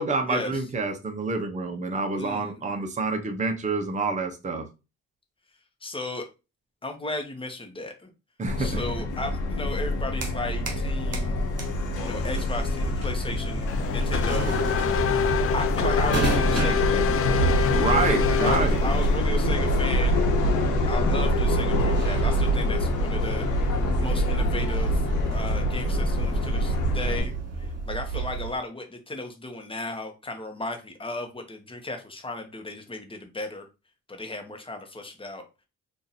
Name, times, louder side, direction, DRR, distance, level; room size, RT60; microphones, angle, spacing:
voice 1, 0.0-4.7 8.4-8.9 17.7-18.8, right 3 dB, 25° right, 0.8 m, -27 dB
voice 2, 2.1-2.6 5.8-6.3 6.8-8.1 8.6-11.4 12.0-14.5 15.5-17.5 18.2-20.2 20.9-23.4 23.9-25.1 25.3-33.7 34.1-35.4, left 2 dB, 15° left, 1.0 m, -35 dB
Subway metro underground, 8.5-27.2, left 1 dB, 85° left, 0.9 m, -25 dB
sound 1, 9.8-10.9 11.1-28.6, right 3 dB, 55° right, 1.3 m, -31 dB
Race car auto racing / Accelerating revving vroom, 13.7-19.2, left 8 dB, 50° left, 0.5 m, -27 dB
2.9 x 2.6 x 4.1 m
cardioid pair, 90°, 30 cm